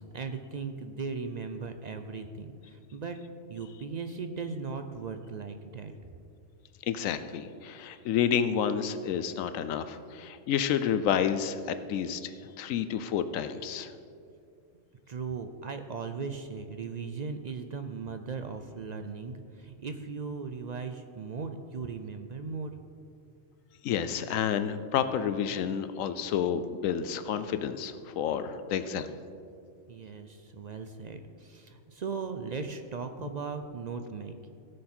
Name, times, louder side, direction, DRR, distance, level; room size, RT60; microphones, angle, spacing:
voice 1, 0.0-3.2 3.5-5.9 15.1-22.7 29.9-34.5, right 5 dB, 60° right, 7 dB, 0.4 m, -38 dB
voice 2, 6.8-13.9 23.8-29.1, left 8 dB, 85° left, 11 dB, 1.0 m, -30 dB
17.0 x 6.6 x 4.4 m, 2.4 s
omnidirectional pair, 1.3 m